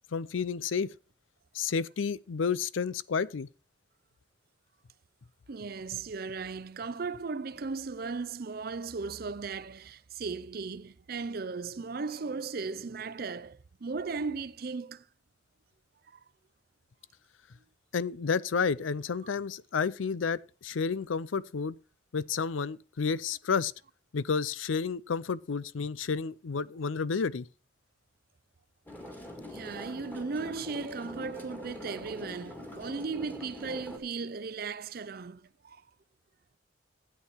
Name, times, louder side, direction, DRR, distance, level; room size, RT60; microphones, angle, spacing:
voice 1, 0.1-0.9 1.5-3.5 17.9-21.7 22.1-23.7 24.1-27.5, left 5 dB, 90° left, 0.5 m, -31 dB
voice 2, 5.5-15.0 16.1-16.2 29.5-35.8, right 4 dB, 50° right, 0.5 m, -36 dB
sound 1, 28.9-34.0, left 1 dB, 10° left, 2.1 m, -44 dB
12.5 x 8.5 x 4.5 m
head